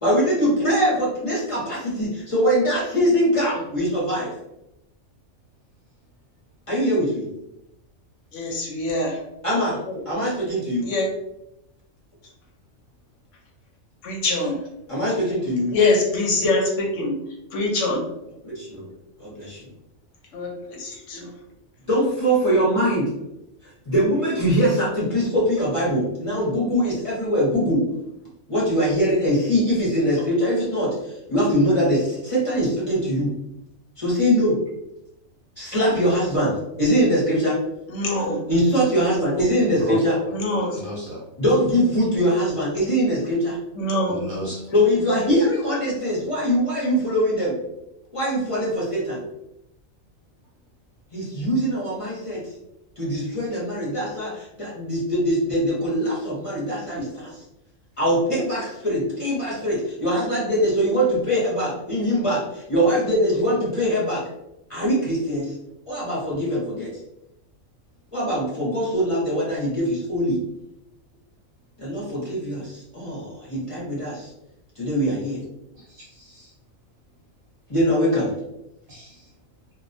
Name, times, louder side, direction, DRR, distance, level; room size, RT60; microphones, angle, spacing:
voice 1, 0.0-4.3 6.7-7.2 9.4-9.8 10.1-10.9 14.9-15.7 18.4-18.8 19.2-19.6 21.1-21.3 21.9-23.1 23.9-27.8 28.5-33.3 34.0-34.6 35.6-37.6 38.5-40.2 41.4-43.6 44.7-47.6 48.1-49.2 51.1-52.4 53.0-57.4 58.0-64.2 64.7-65.5 65.9-66.9 68.1-70.4 71.8-74.3 74.8-75.4 77.7-78.3, equal, 35° left, -7 dB, 0.6 m, -22 dB
voice 2, 8.3-9.2 9.8-10.1 10.8-11.1 14.0-14.7 15.7-18.1 18.8-18.9 20.3-21.3 37.9-38.5 40.3-40.8 43.7-44.3, left 2 dB, 70° left, 0 dB, 0.8 m, -24 dB
voice 3, 40.8-41.2 44.1-44.6 75.7-76.5 78.9-79.2, left 2 dB, 50° right, -5 dB, 0.7 m, -33 dB
2.3 x 2.1 x 2.5 m, 0.87 s
omnidirectional pair, 1.4 m